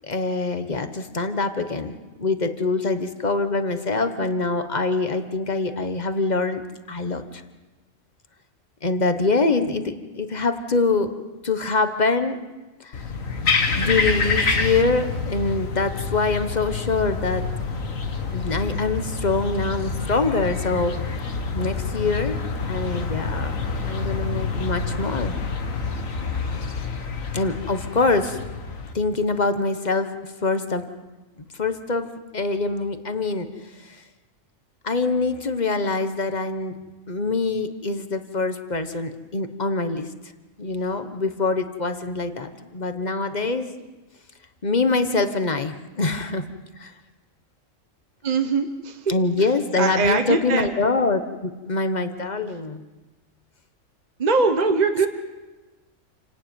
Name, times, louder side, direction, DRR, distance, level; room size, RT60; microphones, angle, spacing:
voice 1, 0.0-6.6 6.9-7.4 8.8-11.1 11.4-12.4 12.8-13.0 13.8-17.4 18.3-21.2 21.5-23.6 23.8-25.3 27.3-28.4 28.9-30.8 31.4-33.5 33.8-34.0 34.8-36.8 37.1-40.1 40.6-43.7 44.6-46.4 46.8-46.9 49.1-52.8, left 3 dB, 35° left, 8 dB, 1.3 m, -24 dB
sound 1, 12.9-28.9, left 4 dB, 80° left, 2.0 m, -27 dB
voice 2, 48.2-49.5 49.7-50.7 54.2-55.1, right 4 dB, 35° right, 6 dB, 1.2 m, -22 dB
28.0 x 11.5 x 9.4 m, 1.2 s
omnidirectional pair, 1.4 m